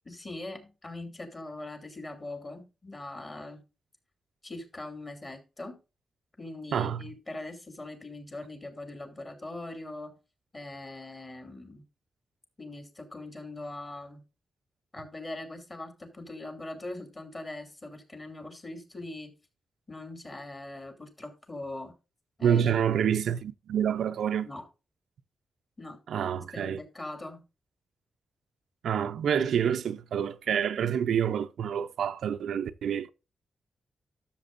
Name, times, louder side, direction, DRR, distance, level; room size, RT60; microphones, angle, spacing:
voice 1, 0.0-3.6 4.4-5.8 6.4-10.1 10.5-11.8 12.6-14.2 14.9-19.3 19.9-21.9 22.4-22.6 24.4-24.6 25.8-26.0 26.3-27.4, left 2 dB, 30° left, 2.9 m, -41 dB
voice 2, 6.7-7.0 22.4-24.5 26.1-26.8 28.8-33.1, right 8 dB, 85° right, 0.5 m, -27 dB
12.5 x 7.3 x 2.6 m
wide cardioid pair, 110°, 0 cm